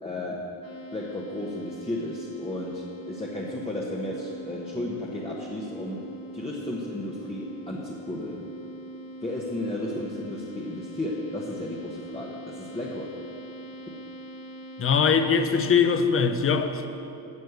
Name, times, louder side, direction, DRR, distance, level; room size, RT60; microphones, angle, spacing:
voice 1, 0.0-0.4 0.9-6.0 6.3-8.4 9.2-13.1, left 1 dB, 15° left, -3 dB, 1.1 m, -33 dB
sound 1, 0.6-16.0, right 1 dB, 65° left, 1.7 m, -42 dB
voice 2, 14.8-16.9, left 6 dB, 35° left, 8 dB, 0.7 m, -22 dB
10.5 x 6.4 x 8.0 m, 2.8 s
cardioid pair, 130°, 39 cm